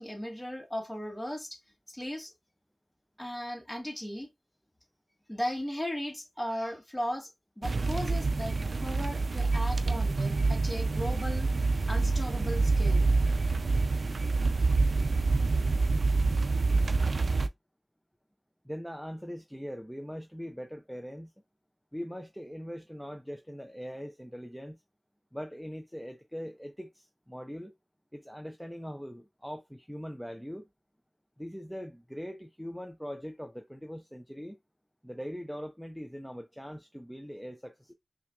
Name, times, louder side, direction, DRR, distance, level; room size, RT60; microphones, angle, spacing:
voice 1, 0.0-1.6 1.9-2.3 3.2-4.3 5.3-7.3 7.6-11.5 11.9-13.1, equal, 15° left, 1.2 m, -36 dB
sound 1, 7.6-17.5, right 3 dB, 65° right, 0.3 m, -27 dB
voice 2, 18.6-21.3 21.9-24.8 25.3-27.7 28.1-30.7 31.4-34.6 35.0-37.9, equal, ahead, 0.4 m, -41 dB
5.6 x 2.3 x 2.3 m
wide cardioid pair, 95°, 0 cm